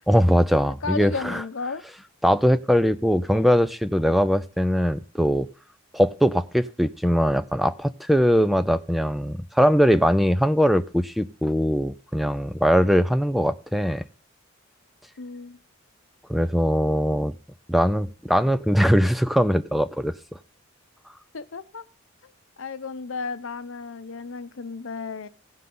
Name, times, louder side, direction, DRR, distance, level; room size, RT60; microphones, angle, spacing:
voice 1, 0.1-1.4 2.2-5.5 5.9-14.0 16.3-17.3 17.7-20.1, equal, ahead, 14 dB, 0.4 m, -21 dB
voice 2, 0.8-1.8 15.2-15.6 21.3-21.9 22.6-25.3, left 4 dB, 80° left, 12 dB, 0.7 m, -33 dB
16.5 x 5.7 x 3.8 m, 0.41 s
head